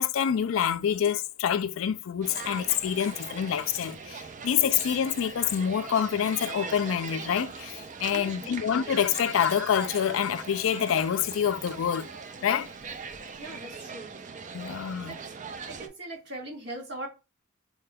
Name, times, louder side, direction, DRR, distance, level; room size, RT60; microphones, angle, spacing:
voice 1, 0.0-12.1 12.4-12.7 14.5-15.2, left 8 dB, 70° left, 0.3 m, -27 dB
sound 1, 2.2-15.9, right 5 dB, 35° right, 0.4 m, -41 dB
voice 2, 8.1-8.5 13.4-14.2 15.0-15.2 15.7-17.1, right 1 dB, 50° right, 1.6 m, -40 dB
4.4 x 2.3 x 3.3 m
head